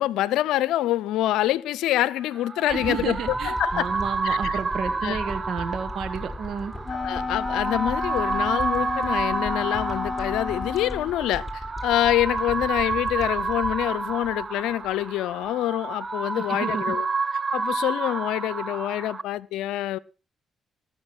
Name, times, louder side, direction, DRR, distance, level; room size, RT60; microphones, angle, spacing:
voice 1, 0.0-3.2 3.4-3.9 4.2-4.6 5.0-5.2 6.9-17.1 17.5-20.0, left 14 dB, 80° left, 0.6 m, -26 dB
sound 1, 2.2-19.2, right 4 dB, 35° right, 0.7 m, -30 dB
sound 2, 2.7-15.0 15.5-15.6, left 1 dB, ahead, 4.0 m, -38 dB
voice 2, 2.7-6.7 16.3-17.0, right 7 dB, 70° right, 1.5 m, -31 dB
Wind instrument woodwind instrument, 6.8-11.1, left 4 dB, 35° left, 1.0 m, -31 dB
18.5 x 7.1 x 5.9 m
supercardioid pair, 50°, 0 cm